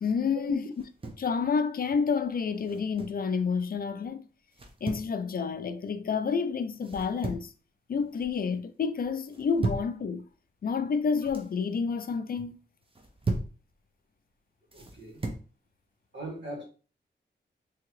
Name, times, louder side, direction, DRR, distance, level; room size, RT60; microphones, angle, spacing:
voice 1, 0.0-0.6 1.2-4.2 4.8-7.5 7.9-10.2 10.6-12.6, left 5 dB, 50° left, 0.4 m, -29 dB
sound 1, 0.7-1.3 2.6-3.2 4.5-5.1 6.8-7.6 7.9-8.4 9.3-9.9 11.0-11.5 12.8-13.6 14.7-15.5, right 3 dB, 30° right, 0.7 m, -36 dB
voice 2, 14.7-15.2 16.1-16.6, equal, 70° right, 1.7 m, -38 dB
3.6 x 2.8 x 3.1 m
wide cardioid pair, 80°, 19 cm